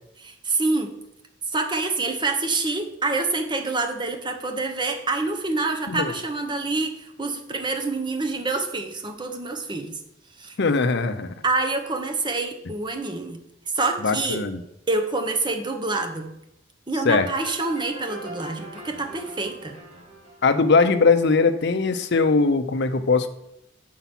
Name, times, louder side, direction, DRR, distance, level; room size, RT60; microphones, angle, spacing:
voice 1, 0.2-0.9 1.5-10.0 10.4-10.6 11.4-13.4 13.7-14.4 14.9-16.3 16.9-19.8, right 3 dB, 25° right, 5 dB, 0.8 m, -27 dB
voice 2, 10.6-11.3 14.0-14.6 17.0-17.3 20.4-23.3, left 4 dB, 60° left, 9 dB, 0.6 m, -20 dB
sound 1, 17.2-21.8, right 1 dB, 40° right, 2.7 m, -42 dB
7.0 x 4.7 x 5.9 m, 0.82 s
head